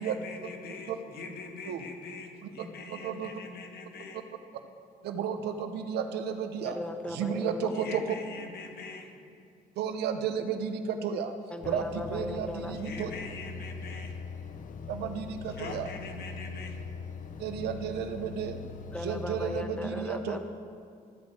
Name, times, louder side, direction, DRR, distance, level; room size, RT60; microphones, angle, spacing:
voice 1, 0.0-4.2 7.7-9.1 12.8-14.1 15.5-16.8, left 4 dB, 75° left, 3 dB, 1.6 m, -43 dB
voice 2, 2.4-3.4 4.1-4.2 5.0-6.8 7.1-8.1 9.8-11.3 11.6-13.1 14.9-15.9 17.4-18.6 19.0-20.4, right 7 dB, 90° right, 7 dB, 0.8 m, -33 dB
voice 3, 6.6-7.7 11.5-12.7 18.9-20.4, left 1 dB, 5° left, 6 dB, 1.0 m, -37 dB
sound 1, 11.6-19.6, left 5 dB, 50° left, 0.8 m, -41 dB
13.5 x 5.3 x 7.9 m, 2.4 s
cardioid pair, 95°, 17 cm